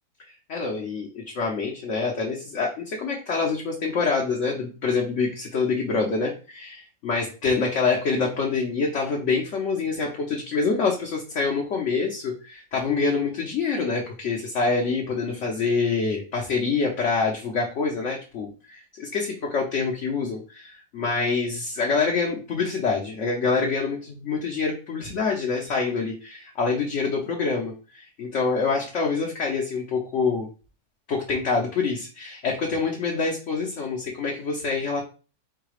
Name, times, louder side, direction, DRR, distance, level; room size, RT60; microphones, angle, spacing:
voice 1, 0.2-24.0 24.2-30.5 31.1-35.0, left 4 dB, 55° left, -1 dB, 1.1 m, -26 dB
4.7 x 2.2 x 4.7 m, 0.35 s
omnidirectional pair, 1.6 m